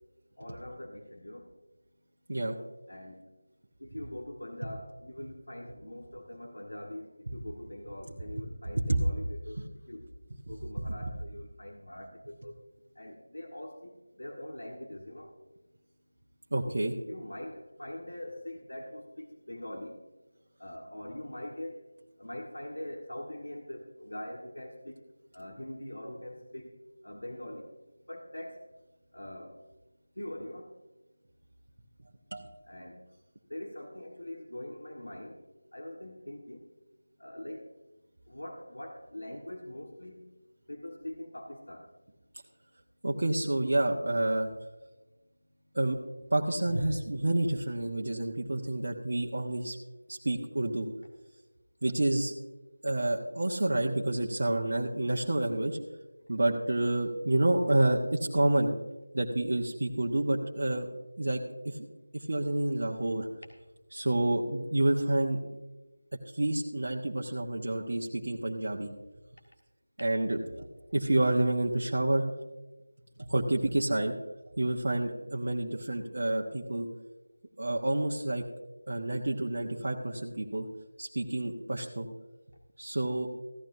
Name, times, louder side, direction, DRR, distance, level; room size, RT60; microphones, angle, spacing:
voice 1, 0.4-1.5 2.9-3.2 3.8-10.1 10.4-12.6 12.9-15.3 17.1-20.0 20.6-21.8 22.2-25.0 25.3-26.8 27.0-27.7 28.1-28.7 29.1-29.6 30.1-30.7 32.6-33.0 33.5-35.4 35.7-36.6 37.2-37.7 38.3-40.3 40.7-41.9, left 1 dB, 80° left, 1 dB, 1.5 m, -43 dB
voice 2, 16.5-16.9 32.3-32.5 43.0-44.5 45.7-46.0 46.3-49.8 50.1-50.9 51.8-52.3 52.8-55.8 56.3-58.7 59.1-60.9 61.2-61.8 62.1-63.3 63.9-65.4 66.3-68.9 70.0-72.2 73.2-74.1 74.6-76.9 77.6-78.4 78.9-80.7 81.0-82.1 82.8-83.3, right 1 dB, 55° right, -1 dB, 1.1 m, -29 dB
15.5 x 12.0 x 2.7 m, 1.1 s
figure-of-eight pair, 170°, 0 cm